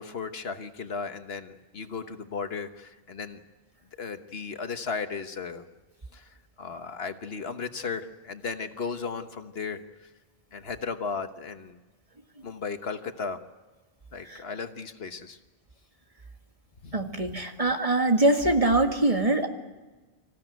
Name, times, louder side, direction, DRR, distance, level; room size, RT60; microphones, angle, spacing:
voice 1, 0.0-3.4 4.0-5.7 6.1-6.3 6.6-9.8 10.5-11.8 12.4-13.4 14.1-15.4 16.8-16.9, left 5 dB, 75° left, 8 dB, 1.5 m, -35 dB
voice 2, 16.9-19.5, right 2 dB, 35° right, 4 dB, 1.9 m, -23 dB
26.0 x 15.5 x 9.3 m, 1.2 s
omnidirectional pair, 1.1 m